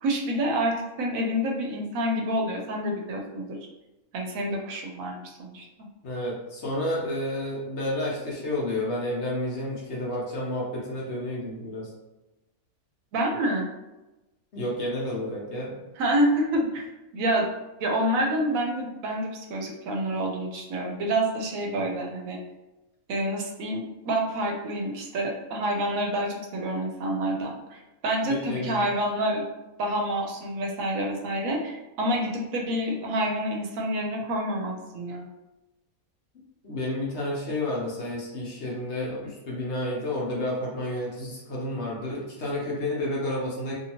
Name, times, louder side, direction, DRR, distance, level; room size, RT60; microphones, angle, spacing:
voice 1, 0.0-3.6 4.1-5.6 13.1-13.7 16.0-16.9 17.1-17.5 17.8-22.4 23.1-29.5 29.8-35.3, right 1 dB, 75° right, 1 dB, 1.0 m, -28 dB
voice 2, 6.0-11.9 14.5-15.8 21.8-21.9 28.2-28.8 36.6-43.7, left 1 dB, 55° left, -4 dB, 0.9 m, -30 dB
2.8 x 2.6 x 2.8 m, 1.0 s
omnidirectional pair, 1.5 m